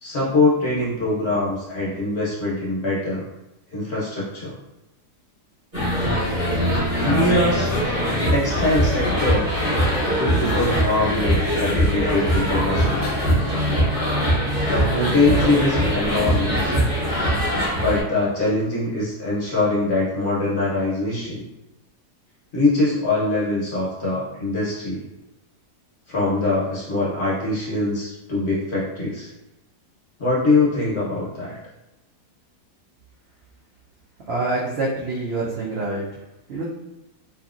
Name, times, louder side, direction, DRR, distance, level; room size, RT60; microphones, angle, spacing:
voice 1, 0.0-3.2 3.7-4.6 6.9-7.7 8.3-9.5 10.2-13.2 14.6-16.8 17.7-21.4 22.5-25.0 26.1-29.3 30.2-31.6, left 2 dB, 50° left, -7 dB, 0.9 m, -23 dB
sound 1, 5.7-18.0, equal, 35° right, 1.2 m, -22 dB
voice 2, 34.3-36.2 36.5-36.7, right 2 dB, 75° right, -6 dB, 0.6 m, -26 dB
2.8 x 2.8 x 2.4 m, 0.96 s
omnidirectional pair, 1.7 m